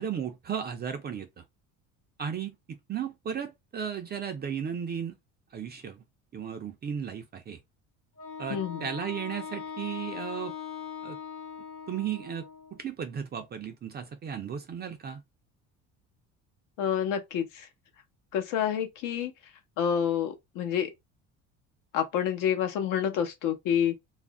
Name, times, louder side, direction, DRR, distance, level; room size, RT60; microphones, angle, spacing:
voice 1, 0.0-1.4 2.2-5.2 5.5-6.0 6.3-7.6 8.4-10.5 11.0-11.2 11.9-12.5 12.7-15.2, right 8 dB, 30° right, 0.4 m, -35 dB
Wind instrument woodwind instrument, 8.2-12.8, left 7 dB, 45° left, 0.9 m, -40 dB
voice 2, 8.5-8.8 16.8-17.7 18.3-19.3 19.8-20.9 21.9-24.0, left 9 dB, 70° left, 0.8 m, -28 dB
2.4 x 2.0 x 3.4 m
cardioid pair, 105°, 33 cm